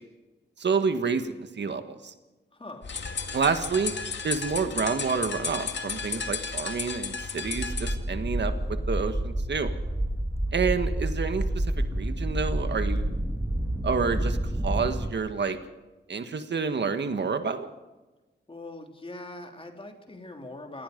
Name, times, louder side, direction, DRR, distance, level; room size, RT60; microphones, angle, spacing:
voice 1, 0.6-2.1 3.3-3.9 4.2-9.7 10.5-13.2 13.8-14.4 14.6-15.6 16.1-17.7, right 5 dB, 65° right, 8 dB, 1.6 m, -29 dB
voice 2, 2.5-2.9 18.5-20.8, left 2 dB, 30° left, 3 dB, 3.3 m, -42 dB
sound 1, 2.8-8.0, left 5 dB, 65° left, 2.0 m, -33 dB
sound 2, 7.5-15.1, right 1 dB, 15° right, 2.0 m, -29 dB
27.5 x 19.0 x 5.3 m, 1.2 s
wide cardioid pair, 105°, 20 cm